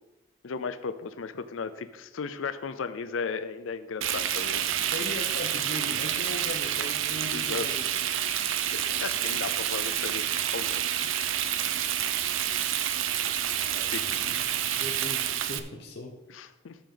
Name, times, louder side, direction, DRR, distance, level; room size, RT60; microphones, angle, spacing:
voice 1, 0.4-4.6 7.3-7.7 8.7-11.1 13.9-14.0 16.3-16.8, left 5 dB, 90° left, 11 dB, 0.5 m, -35 dB
Frying (food), 4.0-15.6, right 10 dB, 85° right, 0.6 m, -28 dB
voice 2, 4.9-7.9 13.7-14.4 14.8-16.2, left 1 dB, 55° left, 1 dB, 0.8 m, -39 dB
14.0 x 5.2 x 3.8 m, 1.0 s
head